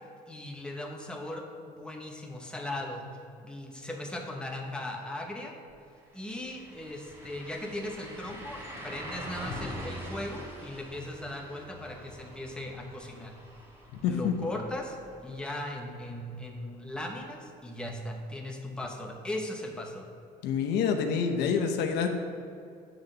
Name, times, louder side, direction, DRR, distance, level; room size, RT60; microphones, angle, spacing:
voice 1, 0.3-3.1 3.4-5.5 6.1-13.3 14.0-15.0 15.2-20.1, left 1 dB, 5° left, 0 dB, 1.0 m, -38 dB
sound 1, 5.7-5.8 6.1-15.9 16.3-16.4 19.1-19.2, equal, 15° right, 1.8 m, -44 dB
voice 2, 14.0-14.3 20.4-22.1, left 6 dB, 85° left, 4 dB, 0.8 m, -27 dB
8.0 x 4.0 x 6.6 m, 2.5 s
cardioid pair, 110°, 17 cm